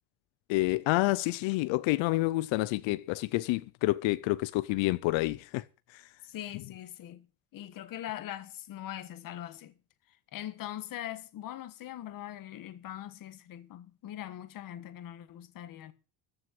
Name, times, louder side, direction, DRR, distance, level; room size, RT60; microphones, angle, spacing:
voice 1, 0.5-6.1, left 20 dB, 90° left, 0.6 m, -29 dB
voice 2, 6.2-7.2 7.5-9.7 10.3-15.9, left 12 dB, 50° left, 1.4 m, -41 dB
14.0 x 6.4 x 7.4 m
cardioid pair, 175°, 44 cm